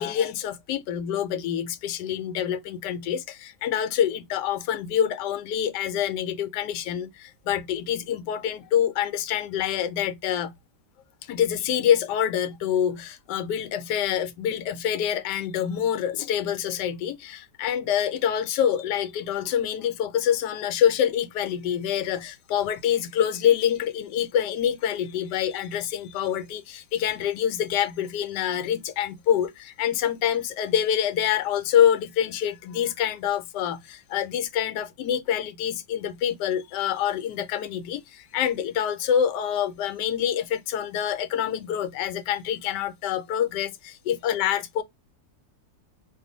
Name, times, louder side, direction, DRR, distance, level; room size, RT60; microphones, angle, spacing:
voice 1, 0.0-10.5 11.3-44.8, left 9 dB, 80° left, 1.2 m, -26 dB
2.5 x 2.4 x 3.8 m
omnidirectional pair, 1.8 m